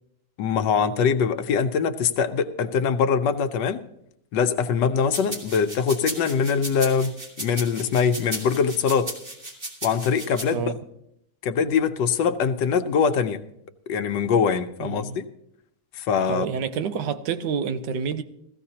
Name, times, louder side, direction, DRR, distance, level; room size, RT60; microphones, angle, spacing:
voice 1, 0.4-3.8 4.3-7.1 7.4-9.1 9.8-10.7 11.4-13.4 13.9-15.3 15.9-16.5, left 6 dB, 90° left, 1.4 m, -23 dB
sound 1, 5.1-10.4, right 1 dB, 30° right, 1.9 m, -35 dB
voice 2, 14.8-15.2 16.3-18.2, right 6 dB, 85° right, 1.4 m, -28 dB
16.0 x 14.5 x 2.8 m
omnidirectional pair, 1.9 m